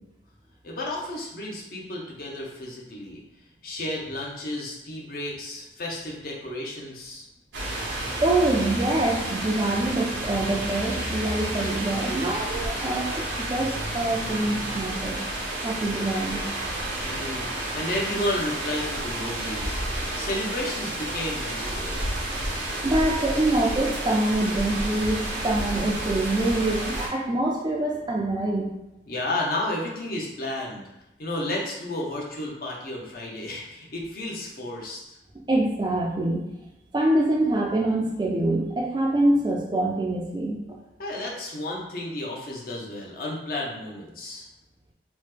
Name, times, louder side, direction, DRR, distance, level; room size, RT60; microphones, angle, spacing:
voice 1, 0.6-3.2 3.6-7.3 17.0-19.8 20.1-22.0 29.1-30.9 31.2-35.2 41.0-44.4, left 1 dB, 50° left, -2 dB, 0.6 m, -32 dB
sound 1, 7.5-27.1, right 1 dB, 80° right, 0.7 m, -31 dB
voice 2, 8.2-15.2 15.6-16.5 22.8-28.7 35.5-36.4 36.9-40.6, right 1 dB, 25° right, -1 dB, 0.4 m, -25 dB
3.0 x 2.1 x 3.3 m, 0.94 s
head